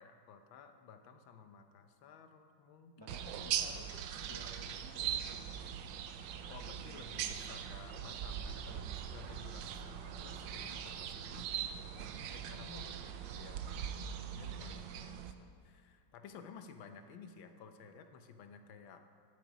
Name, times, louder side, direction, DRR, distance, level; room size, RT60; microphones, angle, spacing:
voice 1, 0.0-3.1 6.5-11.5 12.5-12.9 13.4-14.0 14.3-19.0, left 6 dB, 85° left, 7 dB, 1.6 m, -54 dB
voice 2, 3.0-5.1 11.9-13.2, left 1 dB, 35° left, 0 dB, 0.4 m, -55 dB
sound 1, 3.1-15.3, right 8 dB, 75° right, 1.3 m, -41 dB
13.0 x 10.0 x 5.0 m, 2.1 s
omnidirectional pair, 2.1 m